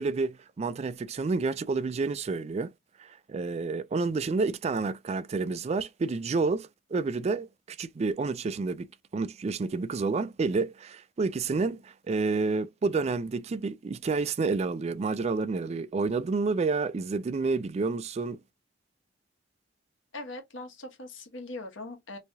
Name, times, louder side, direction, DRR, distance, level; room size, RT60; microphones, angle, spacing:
voice 1, 0.0-2.7 3.0-8.9 9.1-18.4, right 4 dB, 35° right, 0.3 m, -29 dB
voice 2, 20.1-22.2, left 2 dB, 85° left, 1.3 m, -41 dB
3.3 x 3.2 x 2.7 m
head